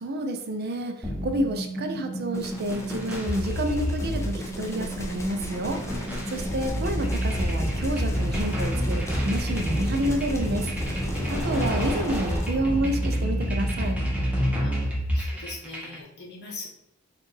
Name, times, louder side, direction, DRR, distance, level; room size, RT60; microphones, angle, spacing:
voice 1, 0.0-14.0, right 1 dB, 50° right, 6 dB, 0.6 m, -29 dB
sound 1, 1.0-16.0, equal, 5° right, 0.9 m, -28 dB
sound 2, 2.3-12.5, equal, 15° left, 0.7 m, -37 dB
sound 3, 8.6-15.7, right 1 dB, 30° left, 1.8 m, -41 dB
voice 2, 14.6-16.7, left 3 dB, 55° left, -2 dB, 1.4 m, -42 dB
4.5 x 2.5 x 4.6 m, 0.79 s
head